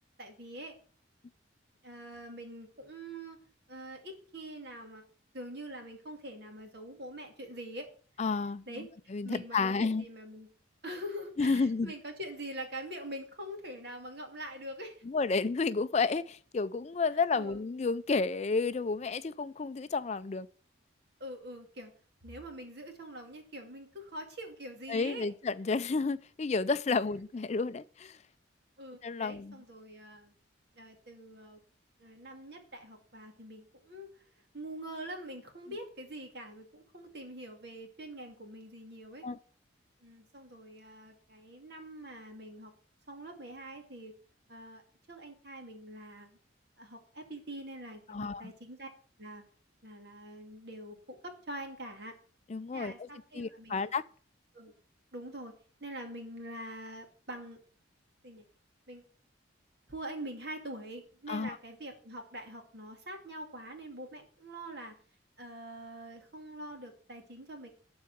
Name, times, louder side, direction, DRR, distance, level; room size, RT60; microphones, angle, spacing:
voice 1, 0.2-0.8 1.8-3.4 3.7-5.0 5.3-7.9 8.7-8.9 9.2-10.5 10.8-15.0 17.3-17.6 21.2-21.9 22.2-25.3 27.0-27.2 28.8-30.3 30.7-31.6 32.0-34.2 34.5-39.3 40.0-42.7 43.1-44.1 44.5-44.8 45.1-46.4 46.8-48.9 49.2-49.4 49.8-52.1 52.7-53.9 54.5-54.7 55.1-55.5 55.8-57.6 58.2-58.4 58.9-59.0 59.9-64.9 65.4-67.7, right 1 dB, 55° right, 2.4 m, -44 dB
voice 2, 8.2-8.6 9.1-10.0 11.4-11.9 15.1-20.5 24.9-28.2 29.0-29.5 39.2-39.4 48.1-48.5 52.5-52.9 53.3-54.0 61.3-61.6, left 4 dB, 35° left, 0.4 m, -31 dB
12.0 x 4.7 x 7.9 m
head